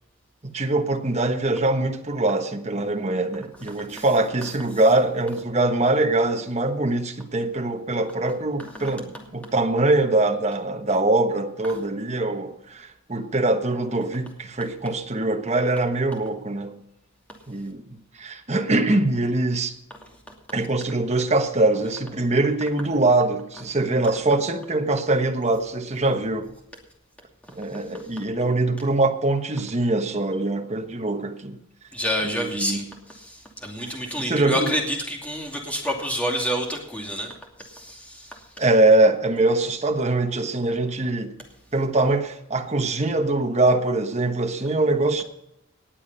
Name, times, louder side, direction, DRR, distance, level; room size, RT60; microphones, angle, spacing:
voice 1, 0.4-16.7 17.5-19.7 20.5-26.5 27.5-31.6 32.2-32.8 33.8-33.9 34.2-34.7 38.6-41.3 41.7-45.2, right 2 dB, 30° right, 1.2 m, -23 dB
voice 2, 31.9-38.4, equal, 5° left, 2.6 m, -29 dB
19.0 x 7.3 x 5.6 m
head